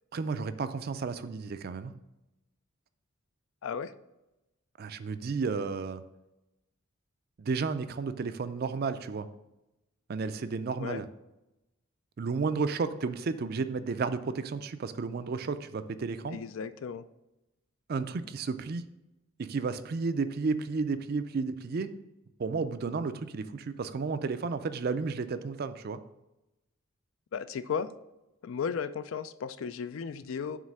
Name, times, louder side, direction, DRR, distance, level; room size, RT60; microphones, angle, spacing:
voice 1, 0.1-1.9 4.8-6.0 7.4-9.3 10.1-11.1 12.2-16.4 17.9-18.8 19.4-21.9 22.4-26.0, right 4 dB, 45° right, 12 dB, 0.4 m, -32 dB
voice 2, 16.3-17.0 27.3-27.9 28.4-30.6, left 6 dB, 70° left, 14 dB, 0.4 m, -35 dB
7.4 x 3.2 x 6.2 m, 0.96 s
head